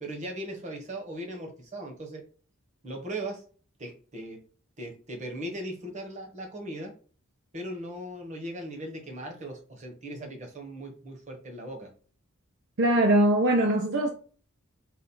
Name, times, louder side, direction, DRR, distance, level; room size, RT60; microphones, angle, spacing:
voice 1, 0.0-2.2 2.8-3.4 3.8-4.4 4.8-6.9 7.5-11.9, right 1 dB, 35° right, 1.2 m, -38 dB
voice 2, 12.8-14.1, right 1 dB, 60° right, 0.6 m, -22 dB
4.1 x 2.5 x 4.2 m
head